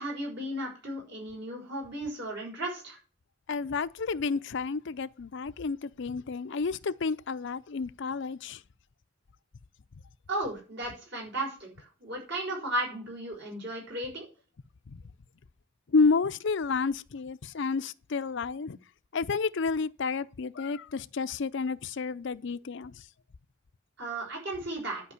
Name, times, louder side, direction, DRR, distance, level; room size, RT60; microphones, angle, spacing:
voice 1, 0.0-3.0 10.3-14.3 24.0-25.0, right 1 dB, 60° right, 6.1 m, -35 dB
voice 2, 3.5-8.6 14.9-15.0 15.9-18.8 19.1-23.1, left 4 dB, 65° left, 0.5 m, -30 dB
11.0 x 5.3 x 8.4 m
head